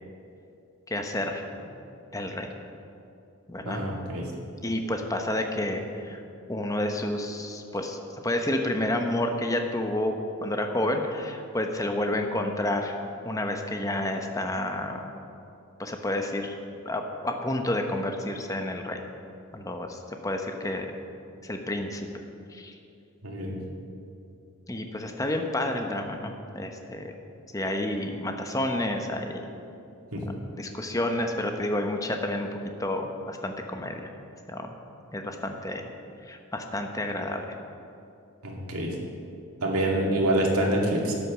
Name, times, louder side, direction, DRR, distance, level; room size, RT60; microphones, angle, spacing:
voice 1, 0.9-1.4 2.1-2.5 3.5-3.9 4.6-6.2 6.5-8.0 8.2-10.1 10.4-12.9 13.2-15.1 15.8-16.5 16.8-19.0 19.5-20.9 21.4-22.1 22.5-22.8 24.7-27.1 27.5-29.5 30.6-32.5 32.8-34.1 34.5-34.7 35.1-35.9 36.2-37.4, left 1 dB, 15° left, 4 dB, 0.9 m, -30 dB
voice 2, 3.7-4.2 23.2-23.6 30.1-30.2 38.4-38.9 39.6-41.1, right 1 dB, 90° right, -1 dB, 2.3 m, -26 dB
12.5 x 8.6 x 6.2 m, 2.7 s
head